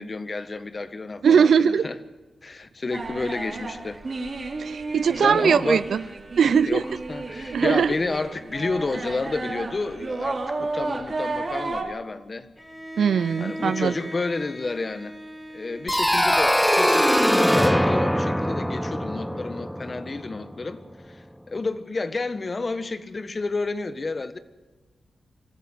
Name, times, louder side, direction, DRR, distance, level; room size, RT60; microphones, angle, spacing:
voice 1, 0.0-2.0 2.4-4.0 5.1-5.9 6.7-12.5 13.4-15.1 15.5-20.8 21.1-24.4, left 3 dB, 45° left, 1.5 m, -30 dB
voice 2, 1.2-1.8 4.6-6.0 6.4-6.8 7.5-7.9 13.0-13.9, right 7 dB, 75° right, 0.6 m, -20 dB
sound 1, 2.9-11.8, right 3 dB, 50° right, 4.0 m, -32 dB
Bowed string instrument, 12.6-17.6, equal, 15° left, 5.2 m, -40 dB
sound 2, 15.9-20.5, equal, ahead, 0.8 m, -22 dB
24.5 x 14.0 x 9.6 m
supercardioid pair, 45°, 0 cm